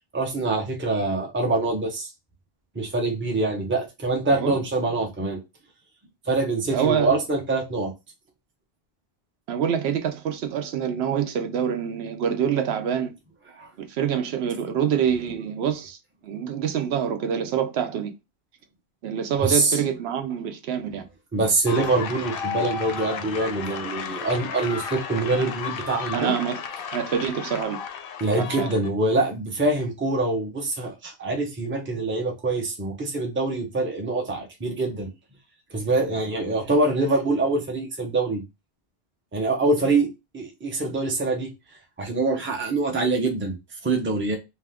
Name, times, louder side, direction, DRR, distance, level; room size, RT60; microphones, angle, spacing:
voice 1, 0.1-2.1 2.8-5.4 6.3-7.9 13.5-13.7 19.4-19.8 21.3-26.3 28.2-35.1 35.7-38.4 39.3-40.1 40.3-41.5 42.0-43.5 43.8-44.4, right 2 dB, 15° right, 0.5 m, -24 dB
voice 2, 6.7-7.2 9.5-13.1 13.8-16.0 16.2-18.1 19.0-21.0 26.1-26.6 26.9-27.8 28.4-28.7, right 8 dB, 80° right, 0.8 m, -26 dB
sound 1, 21.7-28.9, left 7 dB, 65° left, 0.7 m, -33 dB
2.7 x 2.3 x 3.4 m
omnidirectional pair, 1.1 m